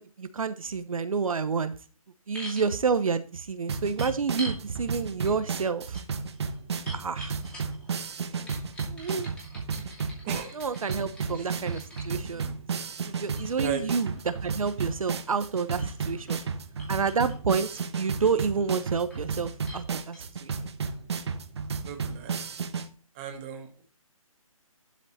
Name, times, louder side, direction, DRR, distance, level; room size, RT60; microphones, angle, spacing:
voice 1, 0.0-1.7 2.3-6.0 6.9-7.4 8.3-8.5 8.9-9.3 10.5-12.4 13.1-16.4 16.9-20.6, right 5 dB, 70° right, 11 dB, 1.0 m, -29 dB
sound 1, 2.3-2.7 4.0-4.6 5.2-5.4 5.6-7.9 8.5-12.1 13.0-16.5 16.8-17.4 17.8-18.3 18.7-19.2 19.7-19.8 20.1-20.2, left 1 dB, 5° left, 2.5 m, -45 dB
sound 2, 3.7-22.9, right 5 dB, 50° right, 1.1 m, -33 dB
voice 2, 10.2-10.6 12.2-12.6 13.6-13.8 21.8-22.4 23.1-23.8, right 8 dB, 20° right, 5 dB, 1.6 m, -36 dB
11.5 x 5.3 x 4.2 m, 0.36 s
hypercardioid pair, 165°, 18 cm